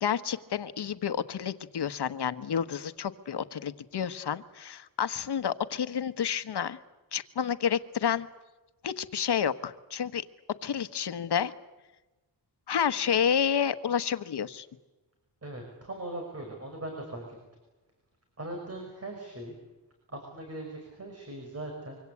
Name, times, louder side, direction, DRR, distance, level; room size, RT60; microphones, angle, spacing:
voice 1, 0.0-6.8 7.1-8.3 8.8-10.2 10.6-11.5 12.7-14.7, left 8 dB, 70° left, 12 dB, 1.3 m, -30 dB
voice 2, 15.4-17.4 18.4-19.6 20.1-22.0, right 1 dB, 35° right, 2 dB, 5.8 m, -40 dB
26.0 x 25.0 x 8.4 m, 1.1 s
wide cardioid pair, 145°, 42 cm